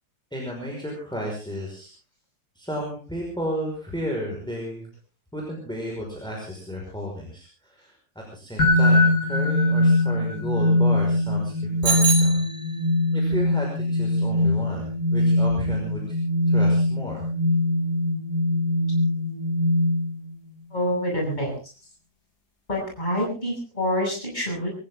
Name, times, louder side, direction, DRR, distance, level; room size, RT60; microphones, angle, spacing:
voice 1, 0.3-1.9 2.6-4.9 5.3-7.9 8.3-12.3 13.1-16.2 16.5-17.2, equal, ahead, -2 dB, 5.4 m, -33 dB
sound 1, 8.6-20.3, left 1 dB, 60° left, 3.7 m, -22 dB
Bicycle bell, 11.8-13.1, right 5 dB, 65° right, 4.5 m, -26 dB
voice 2, 20.7-21.7 22.7-24.7, equal, 20° left, -1 dB, 7.4 m, -27 dB
25.0 x 14.5 x 3.8 m, 0.36 s
omnidirectional pair, 2.0 m